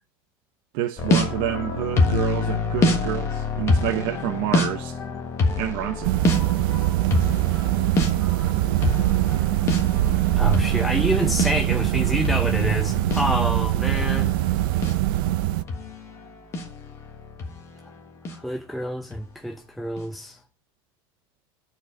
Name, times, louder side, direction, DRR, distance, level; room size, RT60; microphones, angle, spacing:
voice 1, 0.7-4.9 5.6-6.2, right 12 dB, 55° right, 1.0 m, -28 dB
sound 1, 1.0-17.9 18.2-18.4 19.1-19.3 20.0-20.1, left 3 dB, 25° left, 1.4 m, -27 dB
sound 2, 6.0-15.6, right 15 dB, 75° right, 0.6 m, -22 dB
voice 2, 10.4-14.4 18.3-20.4, equal, ahead, 0.6 m, -27 dB
12.5 x 4.7 x 6.3 m
cardioid pair, 165°, 12 cm